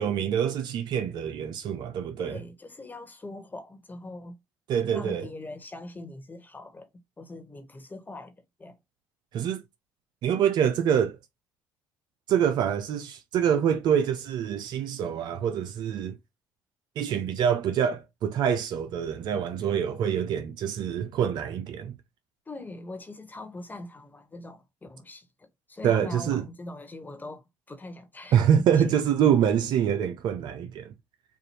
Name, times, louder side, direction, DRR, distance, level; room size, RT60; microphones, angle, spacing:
voice 1, 0.0-2.4 4.7-5.2 9.3-9.6 10.2-11.2 12.3-16.2 17.0-21.9 25.8-26.4 28.3-30.9, right 8 dB, 65° right, 0.6 m, -25 dB
voice 2, 2.2-4.4 4.8-6.9 7.2-8.8 22.5-25.3 25.7-28.4 28.8-28.9, left 2 dB, 20° left, 1.4 m, -42 dB
4.7 x 2.5 x 2.8 m
supercardioid pair, 65°, 8 cm